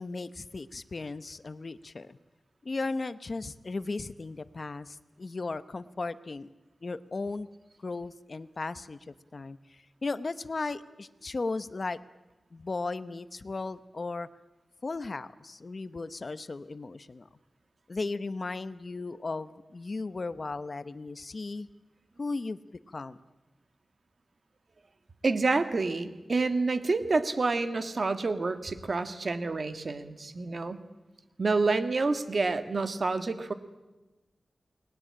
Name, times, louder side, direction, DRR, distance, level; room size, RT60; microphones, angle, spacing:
voice 1, 0.0-2.2 2.6-6.5 6.8-7.5 7.8-12.0 12.5-14.3 14.8-17.3 17.9-21.7 22.2-22.6 22.9-23.2, left 3 dB, 45° left, 14 dB, 0.9 m, -36 dB
voice 2, 25.2-30.8 31.4-33.5, right 3 dB, 50° right, 10 dB, 1.7 m, -28 dB
29.5 x 20.5 x 8.8 m, 1.1 s
wide cardioid pair, 120°, 0 cm